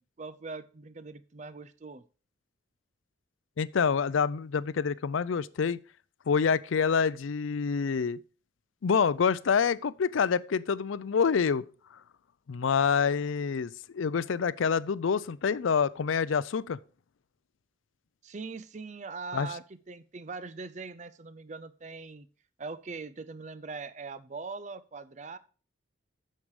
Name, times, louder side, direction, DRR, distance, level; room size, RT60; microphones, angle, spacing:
voice 1, 0.0-2.0 18.2-22.3 22.6-25.4, right 4 dB, 40° right, 0.5 m, -41 dB
voice 2, 3.6-5.8 6.3-8.2 8.8-11.6 12.5-16.8 19.3-19.5, left 6 dB, 85° left, 0.4 m, -27 dB
8.7 x 6.5 x 4.9 m
head